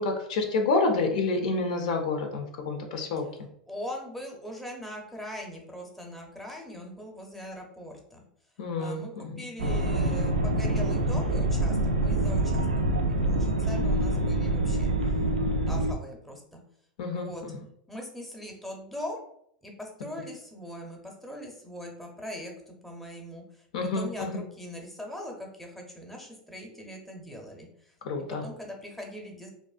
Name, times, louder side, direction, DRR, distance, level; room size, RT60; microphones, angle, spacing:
voice 1, 0.0-3.2 8.6-9.4 17.0-17.6 23.7-24.4 28.0-28.4, left 3 dB, 70° left, 4 dB, 0.5 m, -28 dB
voice 2, 3.7-8.2 8.8-14.9 15.7-16.6 17.1-17.4 17.9-19.2 19.6-23.4 23.8-27.7 28.3-29.5, left 1 dB, ahead, 0 dB, 0.6 m, -41 dB
sound 1, 9.6-15.9, right 1 dB, 90° right, 0.3 m, -26 dB
2.5 x 2.1 x 2.4 m, 0.71 s
hypercardioid pair, 95°, 4 cm